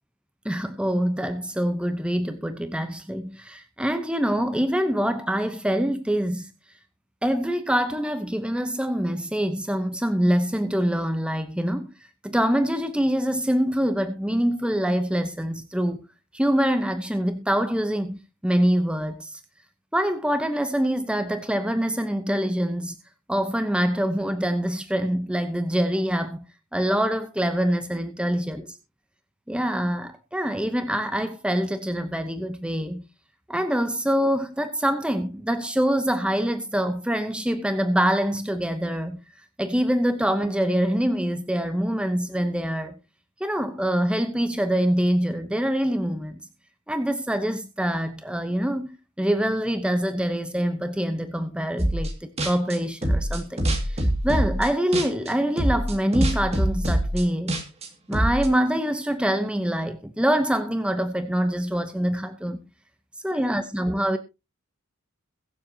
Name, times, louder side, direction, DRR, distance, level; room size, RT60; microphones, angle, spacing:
voice 1, 0.4-6.5 7.2-11.9 12.2-16.0 16.3-19.4 19.9-23.0 23.3-26.4 26.7-28.6 29.5-33.0 33.5-39.2 39.6-43.0 43.4-46.4 46.9-57.6 58.1-62.6 63.2-64.2, equal, 5° right, 0.8 m, -25 dB
sound 1, 51.8-52.1 52.4-55.3 55.6-58.5, right 1 dB, 30° right, 2.3 m, -24 dB
22.0 x 7.5 x 2.8 m
head